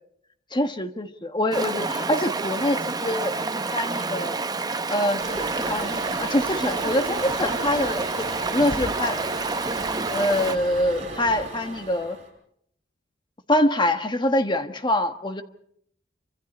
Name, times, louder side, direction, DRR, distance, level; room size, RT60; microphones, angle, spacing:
voice 1, 0.5-4.4 4.9-8.3 8.5-9.2 10.1-12.2 13.5-15.4, left 1 dB, 25° left, 8 dB, 1.4 m, -25 dB
Stream, 1.5-10.6, right 3 dB, 20° right, 0.8 m, -28 dB
Toilet flush, 5.2-12.3, right 2 dB, 40° right, 6.8 m, -35 dB
27.5 x 25.5 x 4.3 m, 0.69 s
head